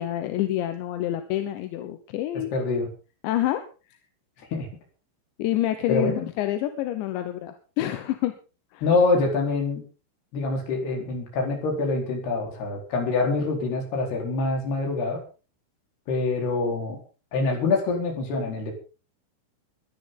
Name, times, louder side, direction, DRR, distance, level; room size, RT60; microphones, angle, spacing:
voice 1, 0.0-2.5 3.2-3.6 5.4-8.4 8.7-8.8, left 13 dB, 75° left, 9 dB, 3.1 m, -27 dB
voice 2, 2.5-2.9 4.4-4.7 5.9-6.3 8.8-9.8 10.3-15.2 16.1-17.0 17.3-18.7, left 3 dB, 55° left, 2 dB, 6.2 m, -25 dB
22.0 x 11.0 x 4.0 m, 0.35 s
omnidirectional pair, 5.8 m